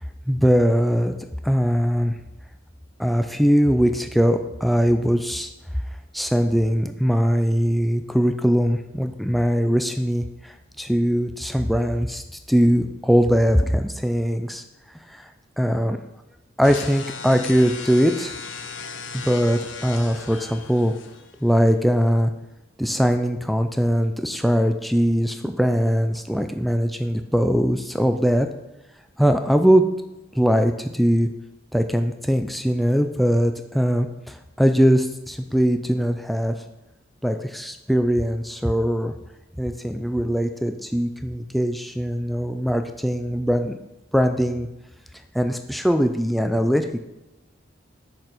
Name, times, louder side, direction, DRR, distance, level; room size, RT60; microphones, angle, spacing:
voice 1, 0.3-1.1 1.4-2.1 3.0-5.5 6.1-12.2 12.5-14.6 15.1-15.3 15.6-16.0 16.6-18.3 19.1-20.9 21.4-22.3 22.8-28.5 29.2-29.8 30.3-31.3 31.7-36.6 37.2-39.1 39.6-43.8 44.1-44.7 45.3-47.0, equal, ahead, 6 dB, 0.3 m, -21 dB
sound 1, 16.6-21.6, left 5 dB, 85° left, 0.6 m, -36 dB
6.1 x 4.4 x 5.0 m, 0.94 s
head